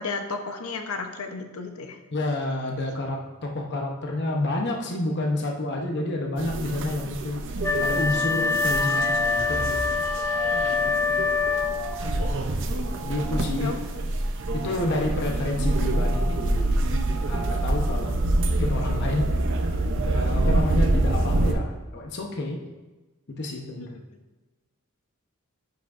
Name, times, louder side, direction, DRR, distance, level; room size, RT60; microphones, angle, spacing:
voice 1, 0.0-2.0 10.9-11.0 13.6-14.1 23.7-24.0, left 4 dB, 90° left, 5 dB, 0.8 m, -34 dB
voice 2, 2.1-7.4 7.8-9.7 13.0-13.7 14.5-16.7 17.3-18.1 18.6-19.4 20.0-22.6 23.3-24.0, left 1 dB, 55° left, 1 dB, 0.9 m, -29 dB
sound 1, 6.4-21.5, right 1 dB, 60° right, 0.7 m, -26 dB
Wind instrument woodwind instrument, 7.6-12.1, left 4 dB, 15° left, 0.4 m, -25 dB
10.0 x 5.9 x 2.5 m, 1.2 s
head